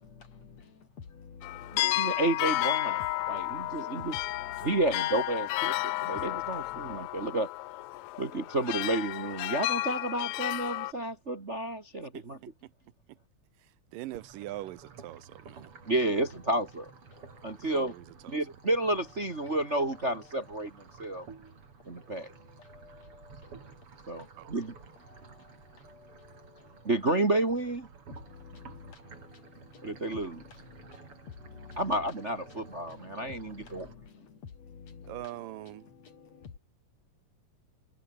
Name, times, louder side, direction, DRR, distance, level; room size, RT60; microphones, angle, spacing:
voice 1, 0.0-2.3 2.9-4.8 5.7-7.4 7.9-8.2 15.6-15.9 17.1-17.5 18.3-18.5 19.4-20.3 20.9-21.3 21.9-26.9 28.1-33.7 34.0-36.6, left 6 dB, 50° left, 4.0 m, -52 dB
sound 1, 1.4-10.9, left 18 dB, 80° left, 1.7 m, -32 dB
voice 2, 1.7-4.2 4.6-7.5 8.2-12.4 15.9-16.9 17.4-17.9 18.3-21.3 21.9-22.3 24.1-24.7 26.8-27.9 29.8-30.4 31.8-33.9, right 2 dB, 25° right, 1.7 m, -31 dB
voice 3, 13.9-15.7 17.7-18.4 24.4-24.5 35.1-35.9, right 15 dB, 80° right, 2.5 m, -42 dB
sound 2, 14.1-34.0, right 5 dB, 45° right, 3.8 m, -53 dB
omnidirectional pair, 3.9 m